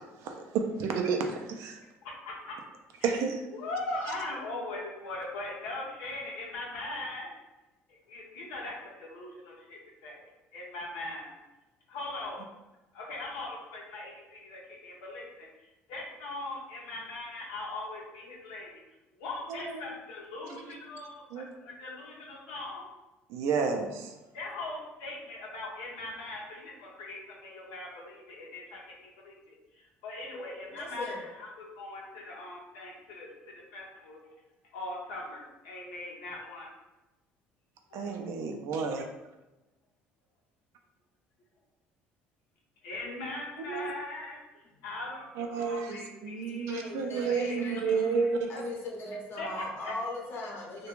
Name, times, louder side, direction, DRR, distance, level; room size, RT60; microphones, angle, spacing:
voice 1, 0.2-1.8 3.0-3.4 3.9-4.0 19.5-19.9 20.7-20.8 21.3-21.5 23.3-24.1 37.9-39.0 43.6-43.9 45.4-48.7, right 5 dB, 75° right, 3 dB, 0.4 m, -31 dB
voice 2, 2.0-2.6 3.0-3.1 3.5-7.3 8.1-10.3 10.5-11.3 11.9-12.4 12.9-18.8 19.2-22.9 24.3-34.2 34.7-36.7 37.9-38.1 42.8-44.4 44.8-46.8 47.3-48.3 49.4-49.9, left 2 dB, 90° left, -2 dB, 0.7 m, -40 dB
voice 3, 30.3-31.2 46.7-48.2 48.5-50.9, left 2 dB, 55° left, -2 dB, 0.8 m, -39 dB
2.4 x 2.2 x 3.0 m, 1.0 s
supercardioid pair, 85°, 5 cm